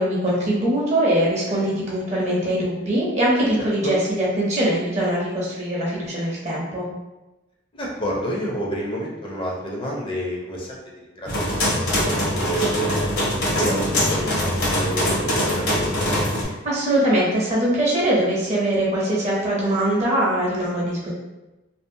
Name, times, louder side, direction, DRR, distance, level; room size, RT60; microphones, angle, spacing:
voice 1, 0.0-6.8 16.6-21.1, right 1 dB, 35° right, -5 dB, 0.6 m, -22 dB
voice 2, 3.6-3.9 7.7-10.8 11.2-13.1 13.6-16.2, equal, 25° left, -3 dB, 0.5 m, -29 dB
sound 1, 11.3-16.4, equal, 65° left, 0.9 m, -22 dB
2.5 x 2.0 x 2.6 m, 1.1 s
head